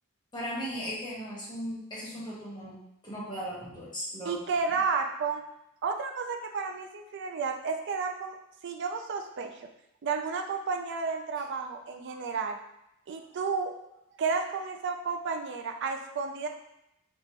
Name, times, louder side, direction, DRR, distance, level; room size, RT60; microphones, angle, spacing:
voice 1, 0.3-2.8 3.0-4.4, equal, 20° left, -8 dB, 1.2 m, -37 dB
voice 2, 4.2-5.4 5.8-8.4 8.6-9.5 10.0-12.6 13.1-13.7 14.2-16.5, right 5 dB, 55° right, 4 dB, 0.4 m, -32 dB
3.3 x 2.9 x 2.8 m, 0.83 s
head